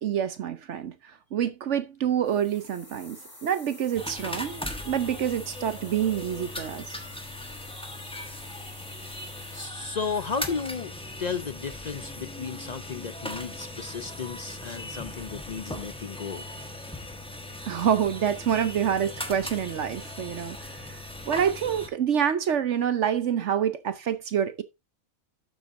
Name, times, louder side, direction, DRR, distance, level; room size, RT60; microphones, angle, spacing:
voice 1, 0.0-7.0 17.7-21.0 21.3-24.6, right 9 dB, 60° right, 1.0 m, -27 dB
sound 1, 2.2-9.7, left 1 dB, 20° left, 5.7 m, -48 dB
sound 2, 3.9-21.9, left 1 dB, 5° left, 1.1 m, -39 dB
voice 2, 9.5-10.9 11.2-16.4, left 5 dB, 60° left, 0.4 m, -34 dB
12.0 x 7.3 x 2.6 m
omnidirectional pair, 1.4 m